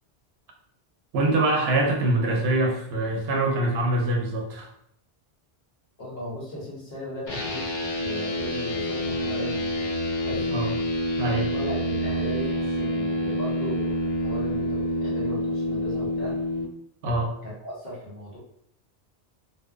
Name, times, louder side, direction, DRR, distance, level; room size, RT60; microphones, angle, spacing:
voice 1, 1.1-4.7 10.5-10.7 11.2-11.5 17.0-17.3, right 2 dB, 75° right, 1 dB, 0.8 m, -24 dB
voice 2, 6.0-7.6 7.9-9.9 10.2-10.5 11.5-16.4 17.4-18.4, left 1 dB, 65° left, -5 dB, 1.2 m, -37 dB
sound 1, 7.3-16.6, equal, 45° left, 0.4 m, -27 dB
2.8 x 2.1 x 2.3 m, 0.71 s
omnidirectional pair, 1.1 m